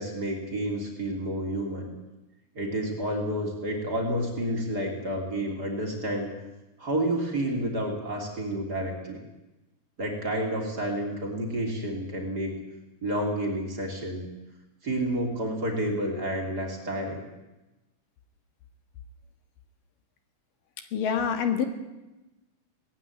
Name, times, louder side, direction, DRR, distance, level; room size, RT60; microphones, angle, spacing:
voice 1, 0.0-1.9 2.6-6.3 6.8-9.2 10.0-12.6 13.0-14.2 14.8-17.2, right 1 dB, 30° right, 0 dB, 3.7 m, -30 dB
voice 2, 20.9-21.7, left 7 dB, 80° left, 7 dB, 3.3 m, -26 dB
19.0 x 15.0 x 9.6 m, 1.0 s
omnidirectional pair, 3.8 m